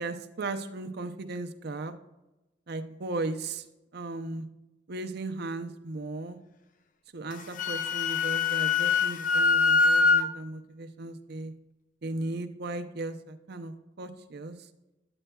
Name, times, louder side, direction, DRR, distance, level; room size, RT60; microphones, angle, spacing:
voice 1, 0.0-1.9 2.7-3.6 3.9-4.4 4.9-6.4 7.1-11.5 12.0-14.6, right 2 dB, 55° right, 7 dB, 0.6 m, -36 dB
Wind instrument woodwind instrument, 7.3-10.3, left 4 dB, 45° left, 0.5 m, -24 dB
8.9 x 8.8 x 2.3 m, 0.99 s
head